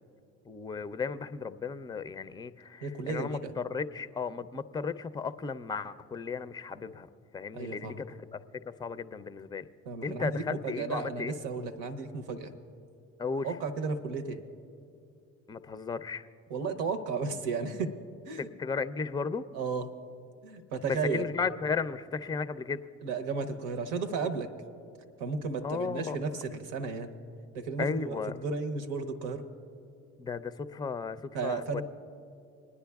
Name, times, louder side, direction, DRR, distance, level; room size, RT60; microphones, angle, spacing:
voice 1, 0.5-7.1 7.3-9.7 10.0-11.3 13.2-13.5 15.5-16.3 18.4-19.4 20.8-22.8 25.6-26.2 27.8-28.4 30.2-31.8, left 5 dB, 10° left, 13 dB, 0.4 m, -35 dB
voice 2, 2.8-3.5 7.5-8.0 9.9-12.5 13.4-14.4 16.5-17.9 18.2-18.5 19.5-19.9 20.4-21.2 23.0-24.5 25.2-27.1 27.5-29.4 31.3-31.8, right 4 dB, 75° right, 7 dB, 0.8 m, -34 dB
26.5 x 9.7 x 2.3 m, 2.5 s
hypercardioid pair, 55°, 35 cm